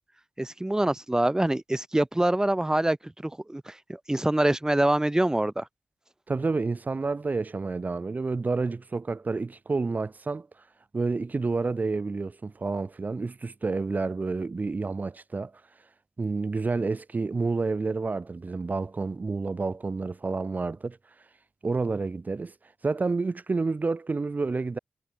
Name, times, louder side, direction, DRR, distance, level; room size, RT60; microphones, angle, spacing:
voice 1, 0.4-5.7, right 1 dB, 15° right, 2.2 m, -25 dB
voice 2, 6.3-10.5 10.9-15.5 16.2-21.0 21.6-22.5 22.8-24.8, right 3 dB, 45° right, 3.8 m, -29 dB
cardioid pair, 65°, 4 cm